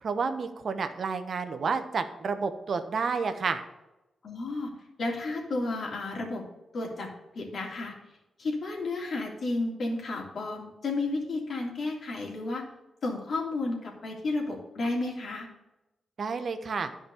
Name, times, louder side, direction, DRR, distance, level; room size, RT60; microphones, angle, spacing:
voice 1, 0.0-3.6 16.2-16.9, right 5 dB, 60° right, 9 dB, 1.0 m, -30 dB
voice 2, 4.2-4.7 5.0-6.4 6.7-7.1 7.3-7.9 8.4-12.6 13.0-15.5, left 2 dB, 65° left, 0 dB, 2.8 m, -32 dB
10.5 x 5.4 x 6.9 m, 0.97 s
supercardioid pair, 40°, 0 cm